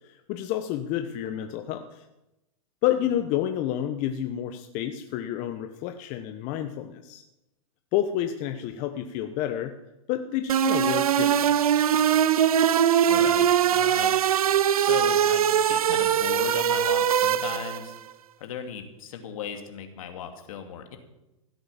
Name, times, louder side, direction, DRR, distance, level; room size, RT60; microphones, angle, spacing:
voice 1, 0.0-2.1 2.8-7.2 7.9-9.7 10.1-11.6, left 11 dB, 45° left, 7 dB, 1.1 m, -29 dB
sound 1, 10.5-17.9, right 9 dB, 90° right, 0.7 m, -22 dB
voice 2, 13.1-14.2 14.8-17.9 18.4-21.0, left 7 dB, 70° left, 5 dB, 2.6 m, -37 dB
16.0 x 7.9 x 7.4 m, 0.96 s
hypercardioid pair, 120°, 18 cm